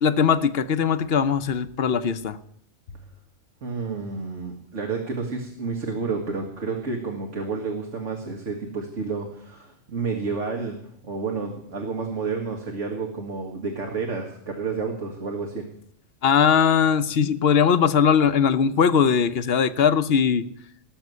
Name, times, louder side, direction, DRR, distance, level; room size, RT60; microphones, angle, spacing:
voice 1, 0.0-2.4 16.2-20.5, left 7 dB, 55° left, 12 dB, 0.9 m, -20 dB
voice 2, 3.6-10.8 11.0-15.6, right 4 dB, 65° right, 2 dB, 2.2 m, -30 dB
18.5 x 7.0 x 9.5 m, 0.72 s
omnidirectional pair, 1.3 m